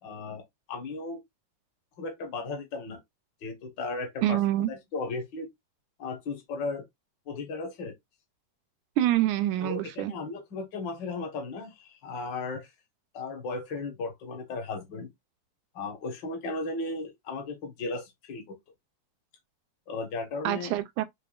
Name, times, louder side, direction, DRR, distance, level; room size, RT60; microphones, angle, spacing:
voice 1, 0.0-0.4 0.7-1.2 2.0-3.0 3.4-4.4 4.7-5.5 6.0-6.8 7.3-7.9 9.6-12.7 13.1-15.1 15.7-18.4 19.9-20.7, left 3 dB, 55° left, 1.3 m, -35 dB
voice 2, 4.2-4.7 9.0-10.1 20.4-21.0, right 13 dB, 80° right, 1.8 m, -26 dB
6.8 x 2.7 x 2.4 m
omnidirectional pair, 3.8 m